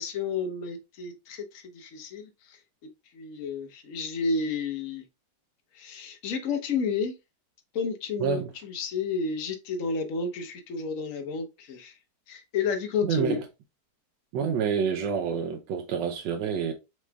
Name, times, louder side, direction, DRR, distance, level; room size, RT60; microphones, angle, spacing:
voice 1, 0.0-2.6 3.1-5.0 5.7-7.1 7.7-12.0 12.3-13.4, left 5 dB, 55° left, 1.1 m, -31 dB
voice 2, 13.0-13.4 14.3-16.7, right 7 dB, 90° right, 1.3 m, -28 dB
5.9 x 3.1 x 2.2 m
omnidirectional pair, 1.9 m